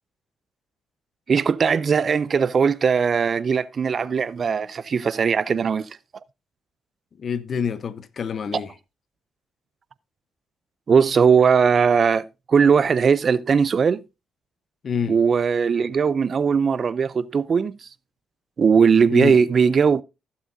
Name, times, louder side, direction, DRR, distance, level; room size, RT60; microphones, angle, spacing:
voice 1, 1.3-5.9 8.5-8.6 10.9-14.0 15.1-17.9 18.6-20.0, right 6 dB, 45° right, 0.4 m, -19 dB
voice 2, 7.2-8.7 14.8-15.2 19.1-19.4, left 6 dB, 50° left, 0.8 m, -27 dB
15.5 x 7.4 x 2.6 m
cardioid pair, 90°, 0 cm